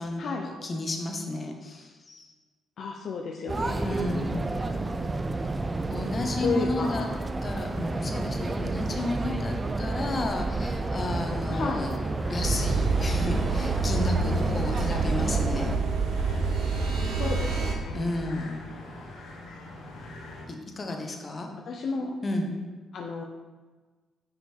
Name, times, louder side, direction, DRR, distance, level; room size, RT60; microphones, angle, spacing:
voice 1, 0.0-2.3 3.8-4.4 5.9-7.1 7.4-12.0 12.3-15.7 17.9-18.7 20.5-21.5 22.2-22.5, left 2 dB, 35° left, 3 dB, 0.9 m, -32 dB
voice 2, 2.8-4.0 6.4-7.2 11.5-11.8 17.2-18.1 20.9-21.0 21.7-22.1 22.9-23.2, left 4 dB, 60° left, 2 dB, 0.5 m, -32 dB
sound 1, 3.5-15.8, right 2 dB, 25° right, 0.4 m, -31 dB
sound 2, 11.2-20.5, left 2 dB, 75° left, 1.1 m, -45 dB
sound 3, 12.4-17.7, right 4 dB, 80° right, 0.8 m, -27 dB
6.1 x 5.2 x 3.5 m, 1.3 s
cardioid pair, 90°, 0 cm